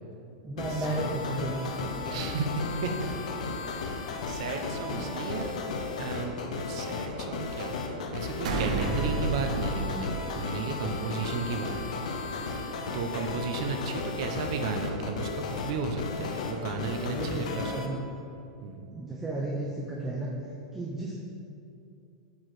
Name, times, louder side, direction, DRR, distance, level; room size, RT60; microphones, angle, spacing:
voice 1, 0.4-2.3 4.9-5.1 17.0-18.0 18.9-20.3 20.7-21.1, right 2 dB, 10° right, -3 dB, 0.6 m, -34 dB
sound 1, 0.6-17.9, left 4 dB, 85° left, 0.8 m, -35 dB
voice 2, 2.1-2.9 4.3-5.5 6.0-12.0 12.9-17.7 18.6-18.9, right 4 dB, 50° right, 5 dB, 0.8 m, -34 dB
sound 2, 8.4-11.0, right 4 dB, 80° right, 0.8 m, -31 dB
8.3 x 4.7 x 4.9 m, 2.6 s
supercardioid pair, 165°, 4 cm